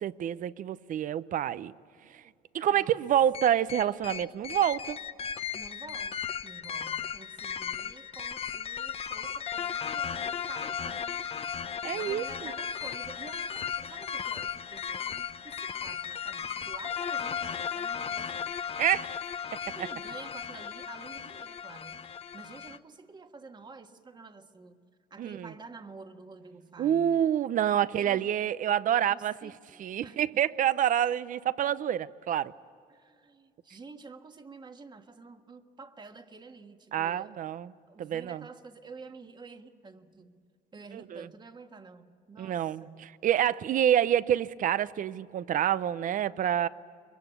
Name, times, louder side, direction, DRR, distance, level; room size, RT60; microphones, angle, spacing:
voice 1, 0.0-1.7 2.1-2.2 2.5-5.0 11.8-12.5 18.8-19.1 25.2-25.5 26.8-29.5 29.8-32.5 36.9-37.7 38.0-38.4 40.9-41.3 42.4-46.7, right 10 dB, 50° right, 0.7 m, -27 dB
sound 1, 3.3-22.8, left 7 dB, 35° left, 0.8 m, -36 dB
voice 2, 5.5-11.2 11.9-18.6 19.6-22.1 22.3-24.8 25.1-27.2 27.7-28.3 28.9-30.4 32.9-40.4 40.7-43.2, right 4 dB, 25° right, 1.5 m, -49 dB
23.5 x 23.0 x 8.5 m
cardioid pair, 110°, 17 cm